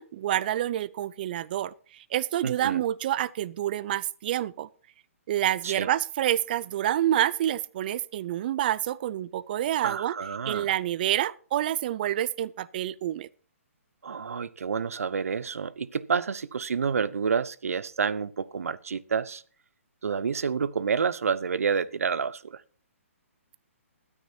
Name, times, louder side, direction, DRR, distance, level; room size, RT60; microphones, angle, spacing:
voice 1, 0.0-1.7 2.1-4.7 5.3-10.1 10.5-13.3, right 12 dB, 40° right, 0.5 m, -28 dB
voice 2, 2.4-2.8 5.6-5.9 9.8-10.7 14.0-19.4 20.0-22.6, right 6 dB, 80° right, 0.8 m, -29 dB
21.0 x 9.9 x 2.8 m
hypercardioid pair, 150°, 8 cm